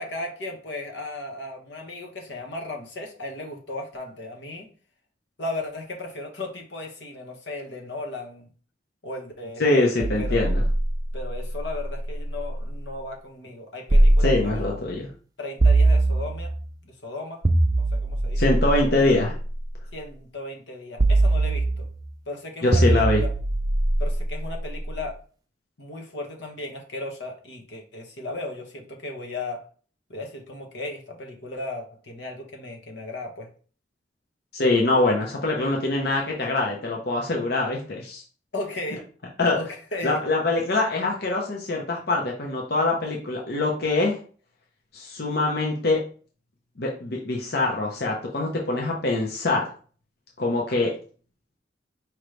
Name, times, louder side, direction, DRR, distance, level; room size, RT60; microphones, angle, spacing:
voice 1, 0.0-4.7 5.4-8.5 9.0-10.5 11.1-14.8 15.4-16.5 16.8-17.4 17.7-18.4 19.9-21.9 22.3-23.3 24.0-25.2 25.8-29.6 30.1-33.5 38.5-39.1 39.6-40.2, left 2 dB, 85° left, 2 dB, 1.1 m, -36 dB
voice 2, 9.6-10.6 14.2-15.1 18.3-19.3 22.6-23.2 34.5-38.2 39.4-39.6 40.0-44.2 44.9-46.0 46.8-49.7 50.4-50.9, left 2 dB, 60° left, -1 dB, 0.8 m, -24 dB
sound 1, 10.0-12.8 13.9-14.9 15.6-16.7 17.4-19.7 21.0-22.1 22.7-24.9, right 2 dB, 20° right, 0.4 m, -22 dB
5.1 x 3.1 x 3.2 m, 0.41 s
head